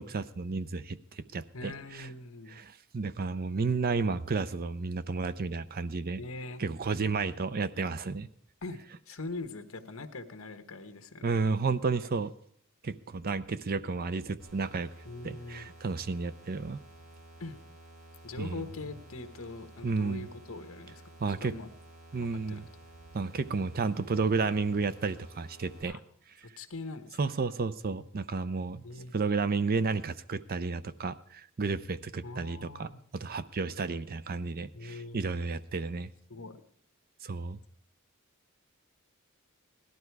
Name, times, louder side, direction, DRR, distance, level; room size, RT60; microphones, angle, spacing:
voice 1, 0.0-2.1 2.6-6.2 6.6-8.3 11.2-12.3 12.8-14.9 15.2-16.8 18.4-18.6 19.8-20.3 21.2-21.5 22.1-22.6 23.1-26.0 27.2-28.8 29.1-36.1 37.2-37.6, right 4 dB, 45° right, 14 dB, 0.5 m, -32 dB
voice 2, 1.5-2.6 6.2-6.6 8.6-11.3 15.0-15.7 17.4-17.6 18.2-21.0 21.4-21.7 22.2-22.6 25.9-26.0 26.4-27.2 28.8-29.1 32.2-33.0 34.7-35.2 36.3-36.6, left 3 dB, 65° left, 9 dB, 1.2 m, -42 dB
sound 1, 14.4-25.8, right 1 dB, 70° right, 5.5 m, -53 dB
17.0 x 12.0 x 4.7 m, 0.67 s
head